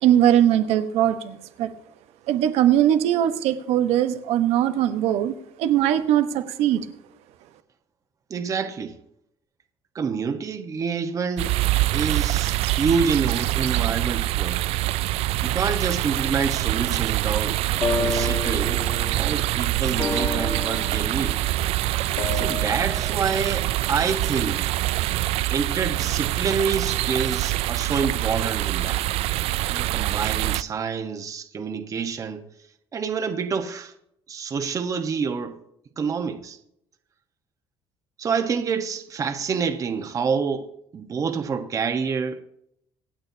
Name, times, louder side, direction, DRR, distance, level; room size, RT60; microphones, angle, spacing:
voice 1, 0.0-1.7 2.3-6.9, right 11 dB, 90° right, 1.1 m, -20 dB
voice 2, 8.3-9.0 9.9-11.5 11.9-14.6 15.4-17.6 18.0-18.9 19.1-21.4 22.3-24.6 25.5-29.1 29.7-32.4 32.9-33.9 34.3-35.6 36.0-36.6 38.2-42.4, right 5 dB, 30° right, 1.2 m, -27 dB
sound 1, 11.4-30.6, right 17 dB, 70° right, 0.4 m, -25 dB
sound 2, 17.0-17.1 17.8-24.0, left 4 dB, 30° left, 1.5 m, -32 dB
25.5 x 8.8 x 2.8 m
cardioid pair, 150°, 10 cm